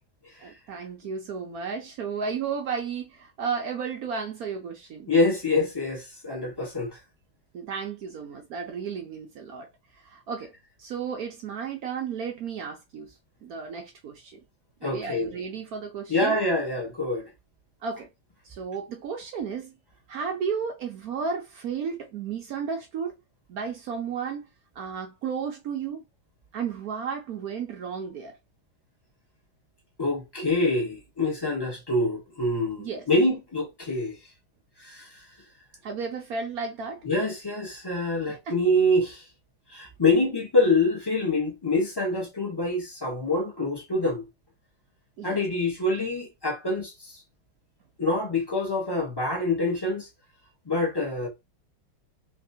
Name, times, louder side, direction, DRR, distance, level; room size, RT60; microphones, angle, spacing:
voice 1, 0.4-5.1 7.5-9.7 10.0-10.5 10.8-13.1 13.4-14.4 14.8-16.4 17.8-18.1 18.4-19.7 20.1-23.2 23.5-24.4 24.8-26.0 26.5-28.3 32.8-33.1 35.8-37.0 38.3-38.5 45.2-45.4, right 6 dB, 75° right, 0.8 m, -33 dB
voice 2, 5.1-6.9 14.8-15.4 16.1-17.2 30.0-34.1 34.8-35.1 37.0-39.2 39.7-44.2 45.2-46.9 48.0-50.1 50.7-51.3, left 2 dB, 25° left, 0.5 m, -25 dB
3.4 x 3.0 x 2.6 m
omnidirectional pair, 2.3 m